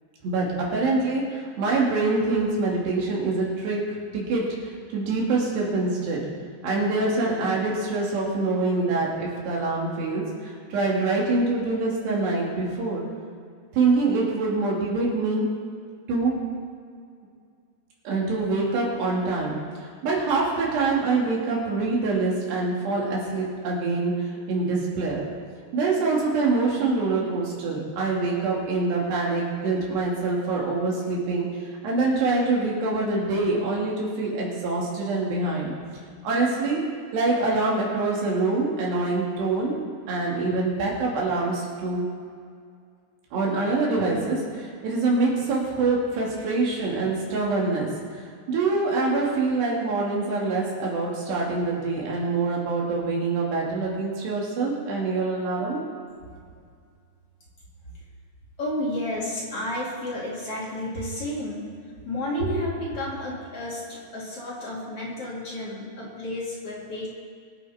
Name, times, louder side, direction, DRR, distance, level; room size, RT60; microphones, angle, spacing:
voice 1, 0.2-6.2 6.6-13.0 13.7-15.5 16.1-16.4 18.0-19.6 20.0-25.3 25.7-31.5 31.8-35.7 36.2-36.8 37.1-42.1 43.3-55.8, right 3 dB, 85° right, -3 dB, 4.7 m, -25 dB
voice 2, 58.6-61.7 62.0-67.1, left 1 dB, 40° left, -6 dB, 3.1 m, -31 dB
23.5 x 8.3 x 4.3 m, 2.2 s
omnidirectional pair, 4.7 m